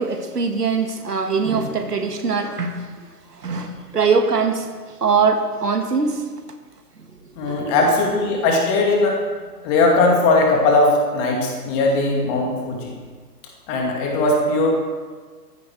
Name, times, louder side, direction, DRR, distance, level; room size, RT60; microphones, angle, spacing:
voice 1, 0.0-2.9 3.4-4.7 5.0-6.3 7.5-7.7, right 5 dB, 65° right, 7 dB, 1.9 m, -22 dB
voice 2, 7.4-9.2 9.6-12.9 13.7-14.7, left 2 dB, 20° left, 0 dB, 2.4 m, -19 dB
15.0 x 12.0 x 4.6 m, 1.5 s
figure-of-eight pair, 130°, 49 cm